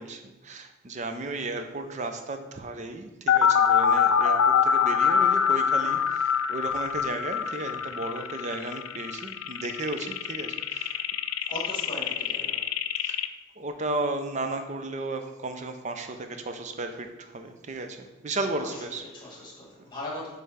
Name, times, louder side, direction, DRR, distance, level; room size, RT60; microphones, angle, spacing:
voice 1, 0.0-11.0 13.0-13.2 13.6-19.4, right 2 dB, 35° right, 6 dB, 0.5 m, -34 dB
sound 1, 3.3-13.3, left 7 dB, 80° left, 0.4 m, -24 dB
voice 2, 11.5-12.6 18.6-20.3, left 1 dB, 20° left, -3 dB, 1.7 m, -39 dB
6.7 x 3.3 x 4.9 m, 1.1 s
head